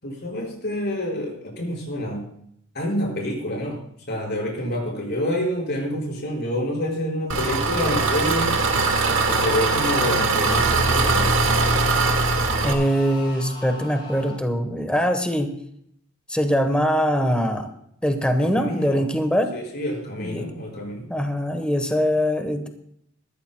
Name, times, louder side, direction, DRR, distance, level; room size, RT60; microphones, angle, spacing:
voice 1, 0.0-2.3 2.7-3.8 4.1-8.6 9.3-11.5 18.4-19.0 19.5-21.1, left 1 dB, 50° left, -2 dB, 5.3 m, -27 dB
Engine, 7.3-12.7, right 3 dB, 65° right, 1.6 m, -21 dB
sound 1, 8.7-14.4, left 2 dB, 25° left, 6.6 m, -38 dB
voice 2, 12.6-15.5 16.3-17.7 18.0-19.5 20.2-20.5 21.1-22.7, equal, 5° left, 6 dB, 1.1 m, -22 dB
21.0 x 13.5 x 2.2 m, 0.70 s
head